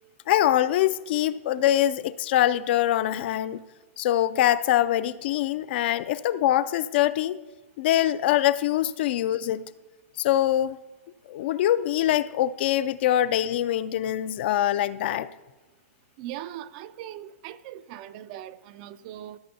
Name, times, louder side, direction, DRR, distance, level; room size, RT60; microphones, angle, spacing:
voice 1, 0.3-3.6 4.0-7.4 7.8-9.7 10.2-10.8 11.3-15.3, left 12 dB, 45° left, 15 dB, 0.3 m, -24 dB
voice 2, 16.2-19.4, right 12 dB, 35° right, 14 dB, 0.3 m, -40 dB
15.0 x 8.4 x 2.8 m, 1.2 s
hypercardioid pair, 160°, 8 cm